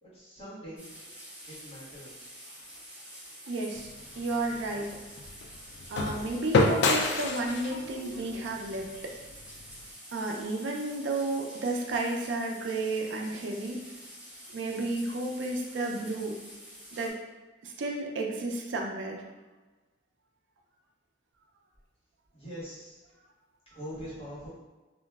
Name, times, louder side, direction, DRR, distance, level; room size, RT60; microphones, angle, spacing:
voice 1, 0.0-0.9 1.5-2.3 22.3-23.0 23.7-24.5, equal, 30° left, -11 dB, 1.3 m, -43 dB
sound 1, 0.8-17.1, equal, 5° right, 0.6 m, -48 dB
voice 2, 3.5-3.9 4.2-4.9 5.9-9.1 10.1-13.8 14.5-16.4 16.9-17.2 17.6-19.2, right 2 dB, 80° right, 1 dB, 0.4 m, -32 dB
sound 2, 3.7-9.9, left 3 dB, 65° left, 0.3 m, -30 dB
2.9 x 2.4 x 2.3 m, 1.2 s
head